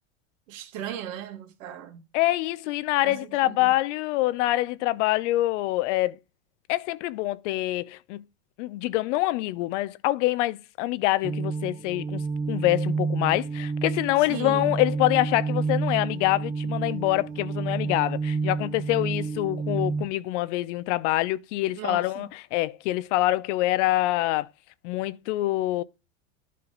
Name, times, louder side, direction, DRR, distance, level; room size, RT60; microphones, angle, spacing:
voice 1, 0.5-2.0 3.0-3.7 14.2-14.7 21.8-22.3, right 11 dB, 65° right, 2.4 m, -37 dB
voice 2, 2.1-6.2 6.7-8.2 8.6-12.2 12.5-24.5 24.8-25.8, left 17 dB, 60° left, 0.8 m, -25 dB
sound 1, 11.2-20.0, right 4 dB, 20° right, 1.1 m, -29 dB
11.0 x 5.6 x 3.9 m
hypercardioid pair, 95°, 41 cm